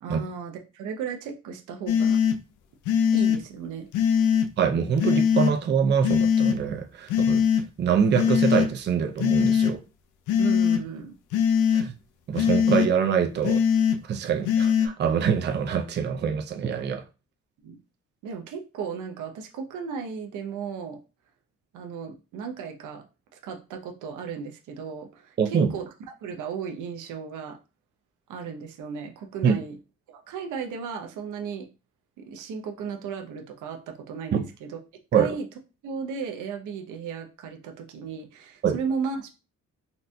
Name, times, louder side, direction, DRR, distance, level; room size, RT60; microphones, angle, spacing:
voice 1, 0.0-2.2 3.1-3.9 10.4-11.1 17.6-17.8 18.2-21.0 21.7-23.1 23.3-25.9 26.2-27.6 28.3-29.8 30.1-31.7 32.2-34.8 35.1-35.5 35.8-39.3, right 6 dB, 80° right, 0.8 m, -35 dB
sound 1, 1.9-2.4 2.9-3.4 3.9-4.5 5.0-5.5 6.0-6.6 7.1-7.6 8.2-8.7 9.2-9.7 10.3-10.8 11.3-11.9 12.4-12.9 13.4-14.0 14.5-14.9, left 7 dB, 80° left, 0.5 m, -21 dB
voice 2, 4.6-7.4 7.8-9.8 11.7-11.9 12.3-13.6 14.1-17.0 25.4-25.7 29.4-29.6 34.3-34.4 35.1-35.4 38.6-38.8, right 7 dB, 35° right, 0.5 m, -24 dB
4.0 x 2.5 x 2.2 m
cardioid pair, 90°, 30 cm